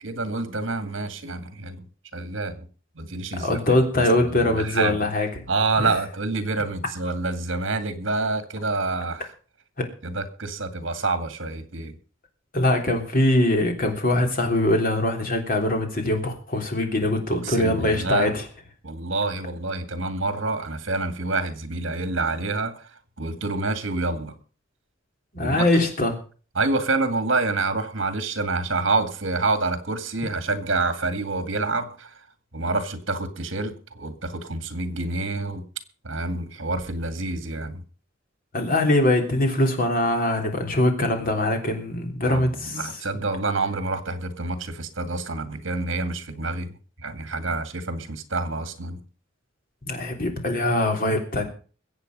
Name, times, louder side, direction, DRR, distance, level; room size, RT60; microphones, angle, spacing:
voice 1, 0.0-1.8 2.1-2.7 3.0-3.5 4.3-5.0 5.5-9.3 10.0-12.0 17.4-18.3 18.8-22.8 23.2-24.3 25.4-25.6 26.6-32.1 32.5-35.6 36.0-37.8 42.2-46.7 47.0-49.0, right 3 dB, 65° right, 2.0 m, -27 dB
voice 2, 3.4-5.4 5.8-5.9 9.8-9.9 12.5-18.4 25.3-26.2 38.5-42.9 49.9-51.4, left 1 dB, 45° left, 3.4 m, -22 dB
22.0 x 8.1 x 5.4 m
head